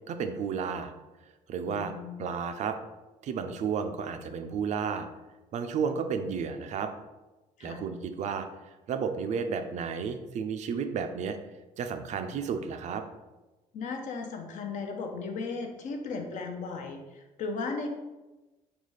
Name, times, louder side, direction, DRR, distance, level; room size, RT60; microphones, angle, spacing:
voice 1, 0.1-0.9 1.5-1.9 2.2-2.8 3.2-5.1 5.5-6.9 7.6-8.5 8.9-11.4 11.8-13.0, right 6 dB, 55° right, 7 dB, 0.4 m, -32 dB
voice 2, 1.7-2.3 7.6-7.8 13.7-17.9, left 4 dB, 60° left, 4 dB, 0.6 m, -36 dB
3.9 x 2.3 x 3.2 m, 1.1 s
cardioid pair, 110°, 14 cm